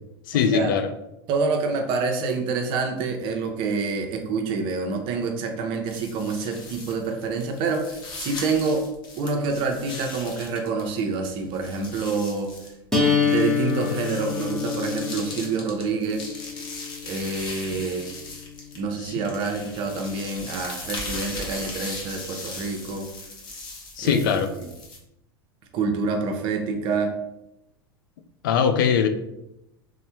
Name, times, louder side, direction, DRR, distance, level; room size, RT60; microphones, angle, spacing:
voice 1, 0.3-0.9 19.0-19.1 24.0-24.5 28.4-29.1, left 7 dB, 60° left, 8 dB, 0.4 m, -21 dB
voice 2, 1.3-8.9 9.2-12.5 13.2-16.2 17.0-18.1 18.8-23.1 24.0-24.2 24.5-24.7 25.7-27.1, right 4 dB, 40° right, 4 dB, 0.5 m, -27 dB
sound 1, 5.9-11.0 11.2-18.9 19.2-25.0, left 3 dB, 35° left, 0.8 m, -38 dB
sound 2, 12.9-18.9, left 5 dB, 5° left, 0.8 m, -27 dB
3.1 x 2.1 x 2.9 m, 0.87 s
figure-of-eight pair, 85°, 12 cm